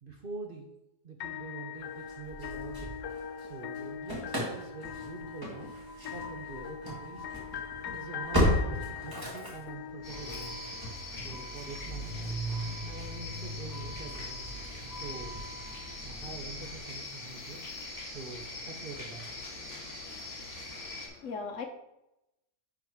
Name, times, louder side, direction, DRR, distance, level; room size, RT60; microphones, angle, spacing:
voice 1, 0.0-0.7 1.0-3.0 3.4-5.7 6.1-7.3 7.9-10.6 11.1-12.4 12.8-14.4 14.9-15.4 16.0-19.3, right 4 dB, 50° right, 2 dB, 0.7 m, -45 dB
sound 1, 1.2-11.2, left 8 dB, 85° left, 1.1 m, -42 dB
Engine starting / Slam, 2.1-3.5 3.7-16.8, equal, 15° right, 2.1 m, -36 dB
sound 2, 10.0-21.1, left 2 dB, 35° left, 1.9 m, -43 dB
voice 2, 19.6-20.3 20.7-21.6, left 5 dB, 60° left, 5 dB, 0.9 m, -43 dB
10.5 x 3.9 x 4.6 m, 0.92 s
omnidirectional pair, 1.7 m